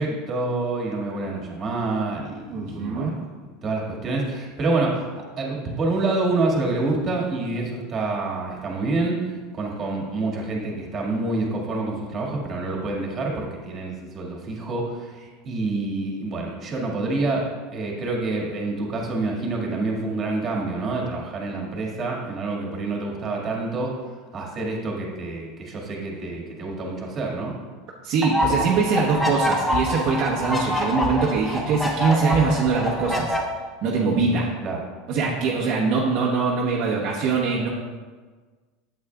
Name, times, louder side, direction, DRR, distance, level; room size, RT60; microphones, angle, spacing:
voice 1, 0.0-3.3 3.6-9.2 9.5-23.9 24.3-27.5 34.6-34.8, right 2 dB, 30° right, -2 dB, 1.8 m, -27 dB
voice 2, 2.5-3.2 28.0-33.4 33.8-34.5 35.1-37.7, right 4 dB, 50° right, -4 dB, 1.0 m, -23 dB
sound 1, 28.2-33.4, left 1 dB, 5° left, 1.1 m, -25 dB
8.8 x 7.9 x 2.3 m, 1.4 s
supercardioid pair, 130°, 0 cm